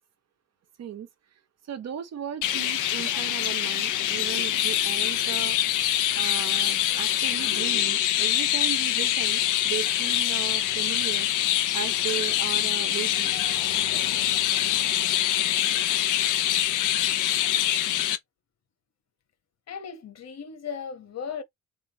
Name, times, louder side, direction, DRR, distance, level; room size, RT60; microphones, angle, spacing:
voice 1, 1.7-5.6 6.2-11.3 11.7-13.4, right 9 dB, 60° right, 1.0 m, -36 dB
Chirp tweet, 2.4-18.2, left 12 dB, 85° left, 0.8 m, -25 dB
voice 2, 19.7-21.4, left 6 dB, 60° left, 1.4 m, -36 dB
3.7 x 3.4 x 3.1 m
cardioid pair, 90°, 30 cm